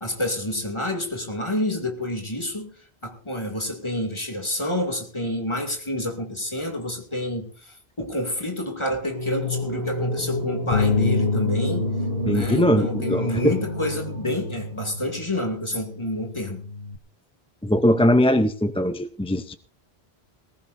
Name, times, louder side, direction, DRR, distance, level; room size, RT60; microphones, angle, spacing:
voice 1, 0.0-2.8 3.0-11.9 12.2-16.6, left 1 dB, 25° left, 2.5 m, -28 dB
sound 1, 9.0-15.2, equal, 35° right, 5.1 m, -31 dB
Bass guitar, 10.7-17.0, left 4 dB, 60° left, 1.0 m, -28 dB
voice 2, 12.3-13.5 17.6-19.5, equal, 5° left, 0.5 m, -21 dB
20.0 x 17.0 x 2.6 m
omnidirectional pair, 1.1 m